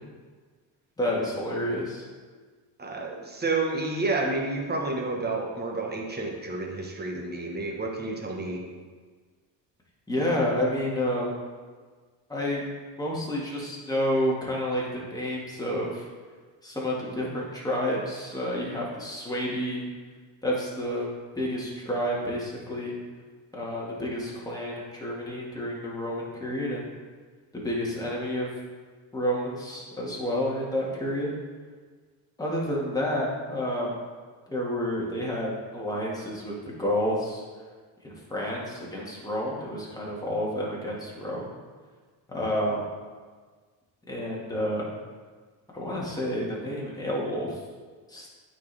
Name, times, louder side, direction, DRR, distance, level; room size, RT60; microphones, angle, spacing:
voice 1, 1.0-2.1 10.1-11.3 12.3-12.6 13.0-16.0 16.6-19.8 20.4-21.1 21.4-23.0 23.5-26.9 27.5-28.5 29.1-31.3 32.4-33.9 34.5-36.5 36.8-37.4 38.0-41.5 42.3-42.9 44.1-44.9 45.7-47.6 48.1-48.3, equal, 10° left, -4 dB, 1.8 m, -29 dB
voice 2, 2.8-8.6, right 3 dB, 20° right, 0 dB, 1.1 m, -30 dB
9.1 x 4.4 x 3.4 m, 1.5 s
cardioid pair, 105°, 46 cm